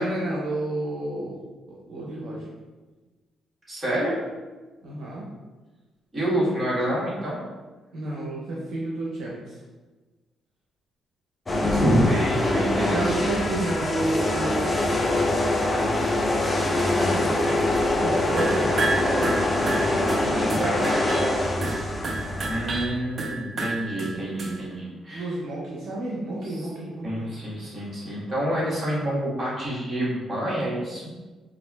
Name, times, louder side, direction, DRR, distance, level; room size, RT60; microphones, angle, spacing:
voice 1, 0.0-1.4 1.9-2.5 4.8-5.2 7.9-9.6 12.9-14.7 16.9-17.6 17.9-19.4 19.8-21.0 25.1-27.4, right 2 dB, 70° right, -5 dB, 0.7 m, -31 dB
voice 2, 3.7-4.2 6.1-7.4 11.7-13.1 22.4-25.3 26.6-26.7 27.0-31.0, equal, 25° right, -7 dB, 1.4 m, -27 dB
sound 1, 11.5-22.9, left 1 dB, 25° left, 0.5 m, -24 dB
sound 2, 18.4-24.6, right 3 dB, 45° right, 0.4 m, -30 dB
4.1 x 2.4 x 2.2 m, 1.3 s
cardioid pair, 90°, 0 cm